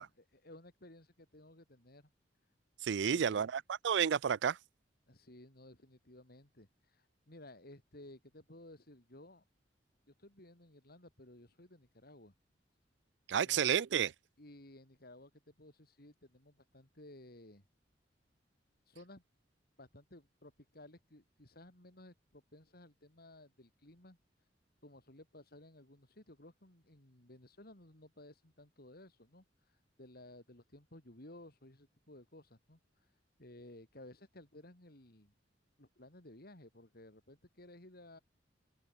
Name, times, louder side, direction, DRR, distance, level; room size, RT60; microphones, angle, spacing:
voice 1, 0.0-2.1 3.0-3.5 5.1-9.4 10.1-12.3 13.4-13.8 14.4-17.6 18.9-19.2 19.8-24.5 24.8-35.3 35.8-38.2, left 1 dB, 60° left, 4.6 m, -57 dB
voice 2, 2.8-4.6 13.3-14.1, right 8 dB, 70° right, 0.4 m, -31 dB
head